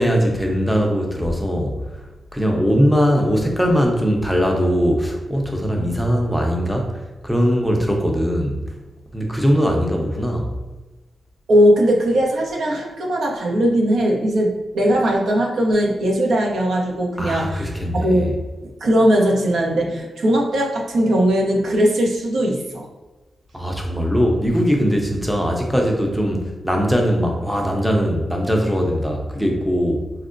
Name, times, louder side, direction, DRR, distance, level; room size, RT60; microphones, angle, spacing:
voice 1, 0.0-1.8 2.3-8.6 9.1-10.5 17.2-18.3 23.5-30.1, equal, ahead, 1 dB, 0.5 m, -20 dB
voice 2, 11.5-18.3 18.8-22.9, equal, 80° right, -1 dB, 0.6 m, -19 dB
4.3 x 2.0 x 2.5 m, 1.2 s
cardioid pair, 95°, 0 cm